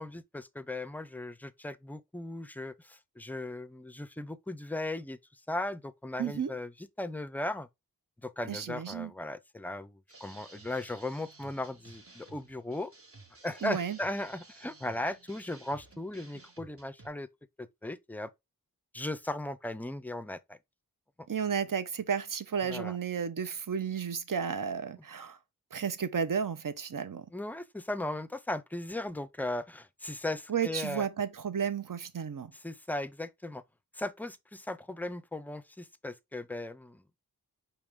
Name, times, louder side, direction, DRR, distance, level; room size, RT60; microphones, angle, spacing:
voice 1, 0.0-5.2 5.5-6.7 7.0-7.7 8.2-12.9 13.4-17.3 17.6-18.3 18.9-20.6 22.7-23.0 27.3-31.1 32.6-33.6 34.0-37.0, left 1 dB, 5° left, 0.4 m, -37 dB
voice 2, 6.2-6.5 8.5-9.1 13.6-14.0 21.3-25.4 25.7-27.2 30.5-32.5, right 7 dB, 60° right, 0.7 m, -33 dB
sound 1, 10.1-17.1, right 3 dB, 40° right, 1.0 m, -54 dB
5.0 x 3.0 x 3.4 m
wide cardioid pair, 40°, 37 cm